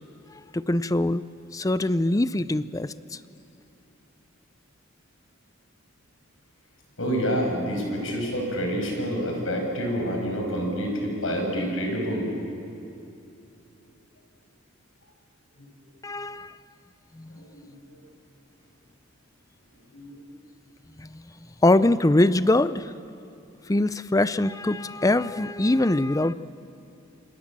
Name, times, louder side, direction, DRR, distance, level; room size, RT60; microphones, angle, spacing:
voice 1, 0.5-1.2 1.5-3.2 16.0-16.6 17.2-17.4 21.0-21.2 21.6-22.9 23.7-26.3, left 2 dB, 15° left, 15 dB, 0.5 m, -23 dB
voice 2, 7.0-12.3 17.9-18.0 19.9-20.1, equal, 80° left, 1 dB, 6.6 m, -27 dB
27.5 x 26.5 x 7.5 m, 2.7 s
head